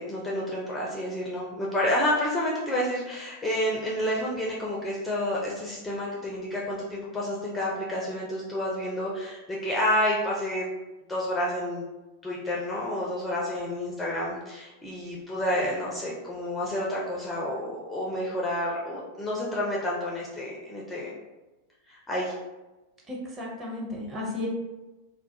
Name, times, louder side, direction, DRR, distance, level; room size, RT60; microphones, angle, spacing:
voice 1, 0.0-10.7 11.1-11.8 12.2-21.1 21.9-22.3, left 1 dB, 10° left, -4 dB, 0.4 m, -29 dB
voice 2, 23.1-24.5, left 2 dB, 20° right, -4 dB, 0.7 m, -34 dB
2.3 x 2.0 x 2.8 m, 1.1 s
figure-of-eight pair, 90°, 0 cm